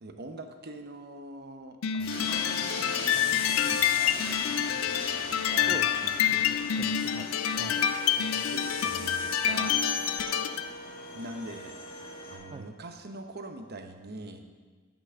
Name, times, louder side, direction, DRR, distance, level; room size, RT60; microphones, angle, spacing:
voice 1, 0.0-2.6 3.0-4.2 5.5-5.9 8.1-9.8 11.1-14.4, right 2 dB, 50° right, 6 dB, 0.9 m, -43 dB
sound 1, 1.8-10.7, left 9 dB, 85° left, 0.4 m, -28 dB
Train, 2.0-12.4, left 2 dB, 45° left, 1.8 m, -39 dB
voice 2, 5.7-7.9 12.5-12.7, right 3 dB, 25° right, 6 dB, 0.3 m, -45 dB
Wind instrument woodwind instrument, 7.8-12.6, right 2 dB, 30° left, 0.5 m, -46 dB
8.4 x 6.1 x 7.0 m, 1.4 s
head